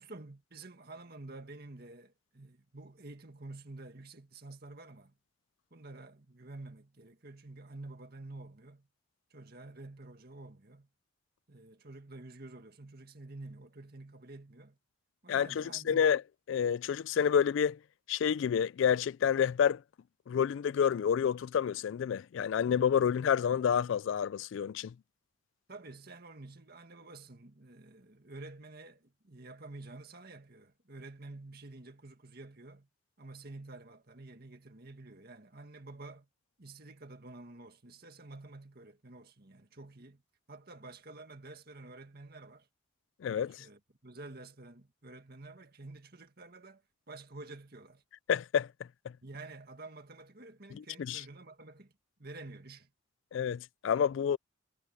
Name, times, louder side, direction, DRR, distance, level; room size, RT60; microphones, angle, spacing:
voice 1, 0.0-5.2 5.7-8.9 9.3-10.9 11.5-14.8 15.2-16.2 25.7-32.9 33.2-36.3 36.6-40.2 40.5-42.7 43.3-46.8 47.1-48.0 49.2-51.9 52.2-52.9, right 2 dB, 50° right, 2.0 m, -49 dB
voice 2, 15.3-16.2 16.5-17.8 18.1-19.8 20.3-24.9 43.2-43.6 48.3-48.7 50.7-51.2 53.3-54.4, left 8 dB, 65° left, 0.3 m, -29 dB
head